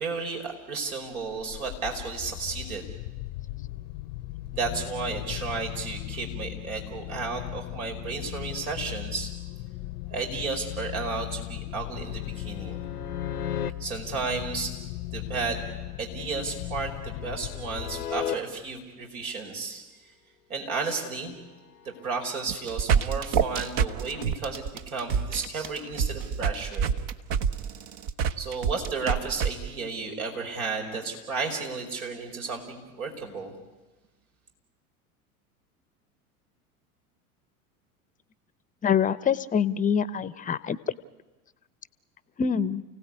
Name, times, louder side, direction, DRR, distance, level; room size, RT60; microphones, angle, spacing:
voice 1, 0.0-2.8 4.5-9.3 10.1-12.8 13.8-14.8 15.1-15.6 16.0-19.9 20.5-21.4 21.8-26.9 28.4-33.5, right 4 dB, 70° right, 3 dB, 5.1 m, -33 dB
sound 1, 1.2-18.5, left 17 dB, 50° left, 0.7 m, -38 dB
sound 2, 11.9-13.7 16.4-18.4 21.8-22.0, left 9 dB, 90° left, 0.9 m, -36 dB
sound 3, 22.5-29.5, right 7 dB, 45° right, 1.2 m, -26 dB
voice 2, 38.8-40.8 42.4-42.8, left 7 dB, 20° left, 17 dB, 0.8 m, -25 dB
29.0 x 17.0 x 9.7 m, 1.2 s
hypercardioid pair, 85°, 45 cm